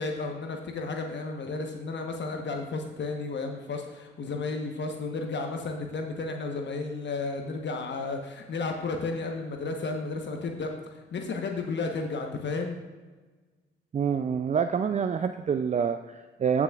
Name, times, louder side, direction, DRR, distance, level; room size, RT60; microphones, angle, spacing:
voice 1, 0.0-10.7 11.1-12.8, left 3 dB, 60° left, 4 dB, 1.1 m, -33 dB
voice 2, 13.9-16.6, right 7 dB, 35° right, 9 dB, 0.4 m, -27 dB
14.0 x 6.1 x 2.4 m, 1.3 s
supercardioid pair, 45°, 21 cm